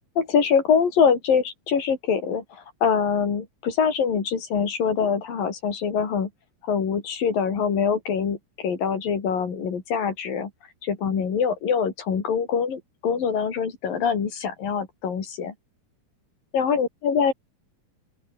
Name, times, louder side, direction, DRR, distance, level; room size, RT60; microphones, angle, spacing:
voice 1, 0.2-6.3 6.6-10.5 10.8-15.5 16.5-17.3, left 6 dB, 65° left, 5.3 m, -24 dB
open air
omnidirectional pair, 4.4 m